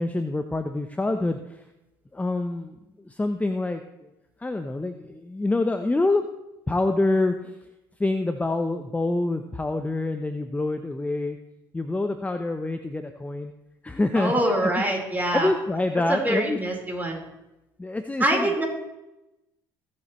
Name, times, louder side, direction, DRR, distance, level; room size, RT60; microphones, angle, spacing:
voice 1, 0.0-1.6 2.1-4.1 4.4-6.2 6.7-7.5 8.0-11.4 11.7-13.5 13.8-14.3 14.6-14.7 15.3-16.6 17.8-18.5, left 2 dB, 15° left, 8 dB, 0.8 m, -26 dB
voice 2, 14.1-15.5 16.1-17.2 18.2-18.6, right 1 dB, 15° right, -1 dB, 4.2 m, -24 dB
21.5 x 7.6 x 3.1 m, 0.95 s
hypercardioid pair, 65°, 11 cm